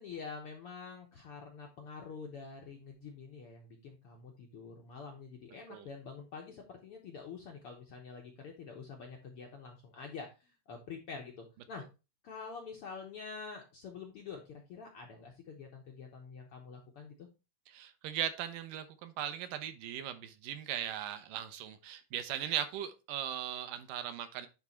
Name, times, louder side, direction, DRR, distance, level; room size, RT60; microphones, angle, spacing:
voice 1, 0.0-11.8 12.2-17.3, left 5 dB, 65° left, 1 dB, 1.4 m, -47 dB
voice 2, 17.7-24.5, right 10 dB, 80° right, 10 dB, 2.3 m, -38 dB
9.7 x 3.7 x 4.3 m, 0.29 s
omnidirectional pair, 3.8 m